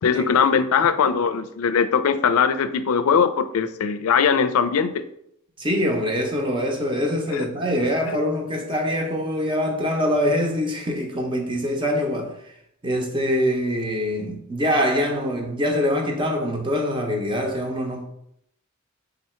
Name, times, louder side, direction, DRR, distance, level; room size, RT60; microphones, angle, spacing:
voice 1, 0.0-5.1 7.3-7.5 8.1-8.2, left 6 dB, 85° left, 0.4 m, -20 dB
voice 2, 5.6-12.3 12.8-18.0, equal, 25° right, 0.7 m, -24 dB
3.9 x 2.7 x 4.3 m
head